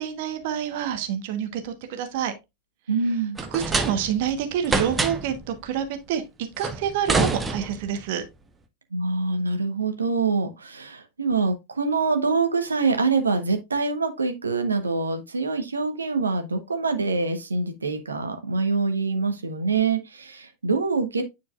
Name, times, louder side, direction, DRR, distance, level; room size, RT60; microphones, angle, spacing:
voice 1, 0.0-2.3 3.5-8.2, right 9 dB, 50° right, 1.2 m, -28 dB
voice 2, 2.9-3.4 8.9-21.2, right 4 dB, 75° right, 1.1 m, -25 dB
sound 1, 3.4-4.3 4.6-5.4 6.6-8.0, right 3 dB, 15° right, 0.8 m, -26 dB
9.5 x 4.6 x 2.4 m
figure-of-eight pair, 90°, 0 cm